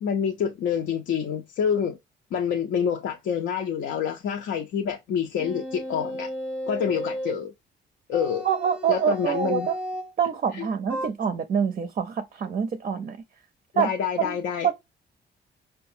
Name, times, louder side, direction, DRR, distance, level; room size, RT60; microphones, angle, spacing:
voice 1, 0.0-2.0 2.3-6.3 6.7-7.5 8.1-8.5 8.9-9.7 10.5-10.7 13.7-14.7, left 7 dB, 70° left, 0.5 m, -27 dB
sound 1, 5.4-7.4 8.1-10.1 10.9-11.1, equal, 5° right, 0.8 m, -34 dB
voice 2, 8.4-9.7 10.2-13.2 13.8-13.9 14.2-14.4 14.6-14.7, right 7 dB, 40° right, 0.4 m, -25 dB
4.6 x 2.2 x 2.6 m
cardioid pair, 90°, 20 cm